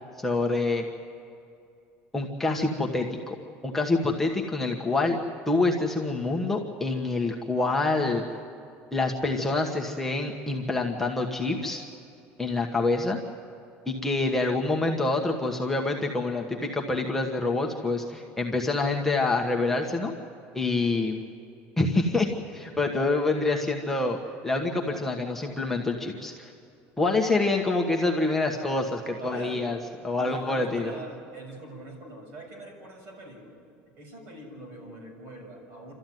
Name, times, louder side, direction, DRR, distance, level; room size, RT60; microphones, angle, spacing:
voice 1, 0.2-0.8 2.1-3.4 3.6-5.2 5.5-8.2 8.9-11.8 12.4-13.2 13.9-20.1 20.5-21.2 21.8-24.2 24.4-26.5 27.0-29.8 30.0-30.9, left 3 dB, 5° left, 0 dB, 1.3 m, -26 dB
voice 2, 29.2-29.8 30.2-33.6 34.0-35.9, right 2 dB, 50° right, 1 dB, 6.9 m, -42 dB
28.5 x 13.5 x 9.3 m, 2.5 s
cardioid pair, 155°, 5 cm